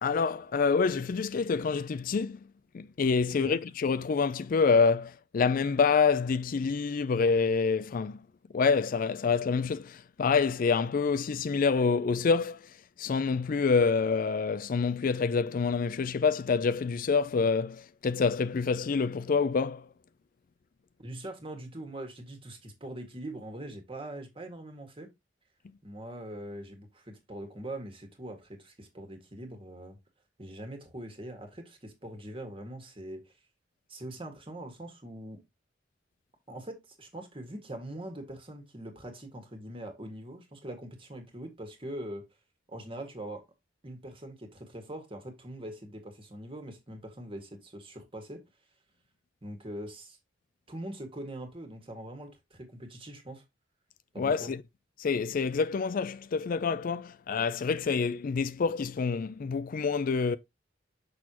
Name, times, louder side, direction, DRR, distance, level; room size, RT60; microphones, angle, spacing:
voice 1, 0.0-2.4 2.7-8.2 8.5-12.6 13.0-19.9 54.2-54.6 55.0-60.4, left 5 dB, 50° left, 0.4 m, -27 dB
voice 2, 3.3-3.6 21.0-25.1 25.8-30.0 30.4-33.3 33.9-35.4 36.5-42.2 42.7-43.4 43.8-48.4 49.4-50.2 50.7-53.4 54.1-54.5, right 1 dB, 30° right, 1.7 m, -42 dB
6.4 x 6.2 x 2.9 m
head